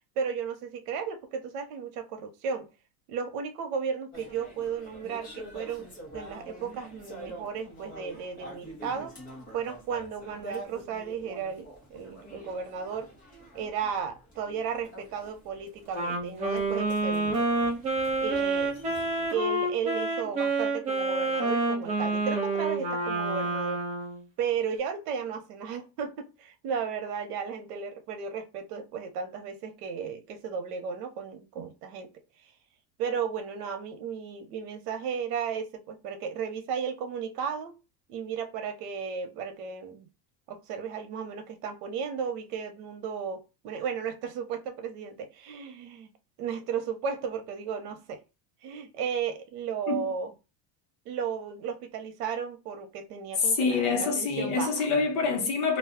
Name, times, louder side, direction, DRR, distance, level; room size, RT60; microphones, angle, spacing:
voice 1, 0.2-2.7 3.1-5.9 6.1-9.1 9.5-13.1 13.5-17.5 18.2-18.7 19.3-23.8 24.4-32.1 33.0-37.8 38.1-40.1 40.5-46.1 46.4-48.2 48.6-50.3 51.1-54.7, right 6 dB, 80° right, 0.9 m, -34 dB
sound 1, 4.1-19.3, right 1 dB, 15° left, 0.9 m, -46 dB
Wind instrument woodwind instrument, 15.9-24.2, right 2 dB, 15° right, 0.3 m, -28 dB
voice 2, 53.4-55.8, left 4 dB, 50° left, 1.0 m, -26 dB
2.5 x 2.3 x 3.6 m
cardioid pair, 175°, 46 cm